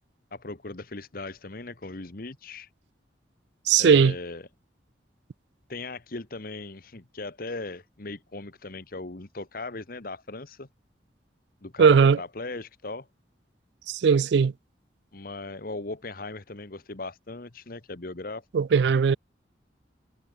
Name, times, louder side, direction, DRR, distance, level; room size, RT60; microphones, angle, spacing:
voice 1, 0.3-2.7 3.8-4.4 5.7-10.7 11.6-13.1 15.1-18.4, left 3 dB, 50° left, 1.3 m, -38 dB
voice 2, 3.7-4.1 11.8-12.2 13.9-14.5 18.5-19.2, right 6 dB, 70° right, 0.4 m, -18 dB
head